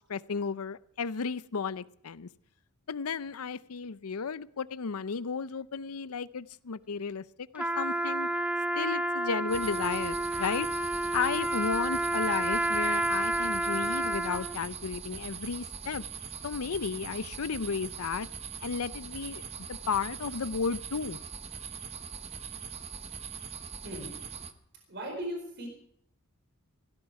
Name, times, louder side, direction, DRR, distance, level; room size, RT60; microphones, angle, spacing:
voice 1, 0.1-2.3 2.9-8.3 8.7-10.7 11.1-16.0 16.4-18.3 18.6-21.2, left 5 dB, 85° left, 17 dB, 0.6 m, -33 dB
Trumpet, 7.6-14.6, right 1 dB, 5° right, 0.6 m, -30 dB
sound 1, 9.5-24.5, right 6 dB, 30° right, 0.9 m, -42 dB
voice 2, 24.9-25.7, equal, 50° right, 2 dB, 4.6 m, -37 dB
16.5 x 15.5 x 4.8 m, 0.69 s
head